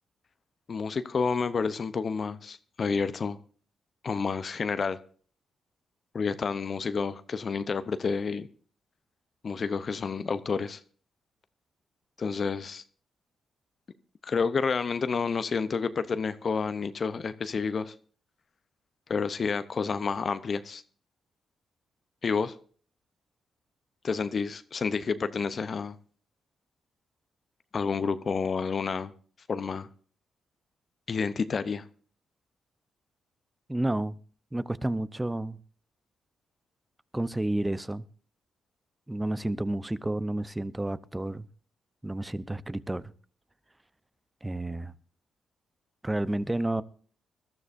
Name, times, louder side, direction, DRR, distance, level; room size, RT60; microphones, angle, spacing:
voice 1, 0.7-3.4 4.0-5.0 6.1-8.5 9.4-10.8 12.2-12.8 14.2-17.9 19.1-20.8 22.2-22.6 24.0-26.0 27.7-29.1 29.5-29.9 31.1-31.9, left 5 dB, 50° left, 0.7 m, -29 dB
voice 2, 33.7-34.2 34.5-35.6 37.1-38.0 39.1-41.5 42.0-43.1 44.4-44.9 46.0-46.8, right 1 dB, 15° right, 0.8 m, -30 dB
21.0 x 12.5 x 2.6 m
supercardioid pair, 55°, 0 cm